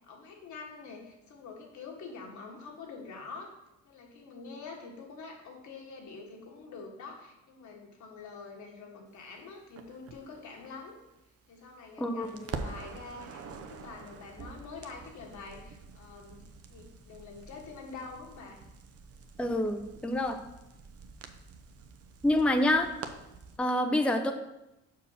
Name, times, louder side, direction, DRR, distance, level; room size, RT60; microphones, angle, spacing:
voice 1, 0.1-3.5 3.8-11.0 11.5-16.4 16.7-18.6, left 4 dB, 70° left, 0 dB, 1.7 m, -46 dB
Crackle, 9.8-11.9 12.2-23.6, right 5 dB, 50° right, 0.7 m, -46 dB
voice 2, 19.4-20.4 22.2-22.9 23.6-24.3, left 1 dB, 5° left, 5 dB, 0.5 m, -27 dB
5.8 x 4.7 x 5.7 m, 0.91 s
cardioid pair, 90°, 30 cm